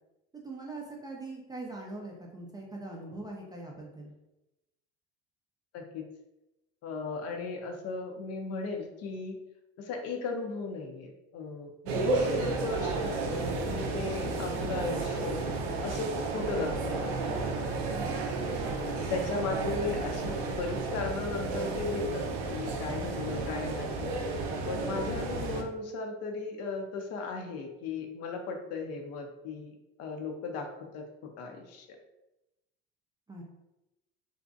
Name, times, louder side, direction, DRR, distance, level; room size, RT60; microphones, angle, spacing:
voice 1, 0.3-4.1 17.9-18.4 33.3-33.4, right 2 dB, 15° right, -1 dB, 0.3 m, -42 dB
voice 2, 5.7-6.1 6.8-9.4 9.8-15.4 15.8-17.1 18.6-24.2 24.7-30.7 30.9-31.9, left 4 dB, 55° left, 4 dB, 0.5 m, -36 dB
sound 1, 11.9-25.6, right 3 dB, 85° right, 0.5 m, -32 dB
2.6 x 2.1 x 2.4 m, 0.95 s
supercardioid pair, 95°, 31 cm